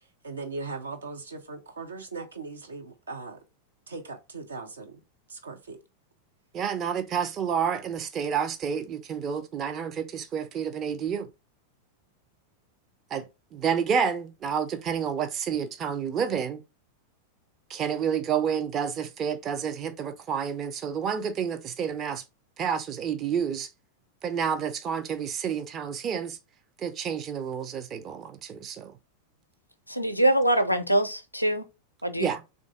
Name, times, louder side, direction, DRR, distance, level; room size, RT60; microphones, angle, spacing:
voice 1, 0.2-3.4 3.9-5.0 5.3-5.8, right 3 dB, 75° right, 0.8 m, -39 dB
voice 2, 6.5-11.3 13.1-16.6 17.7-22.2 22.6-23.7 24.2-26.4 26.8-29.0 32.2-32.4, right 7 dB, 30° right, 0.6 m, -29 dB
voice 3, 29.9-31.6 32.0-32.3, right 1 dB, 90° left, 0.5 m, -24 dB
3.3 x 2.6 x 3.6 m
figure-of-eight pair, 90°, 0 cm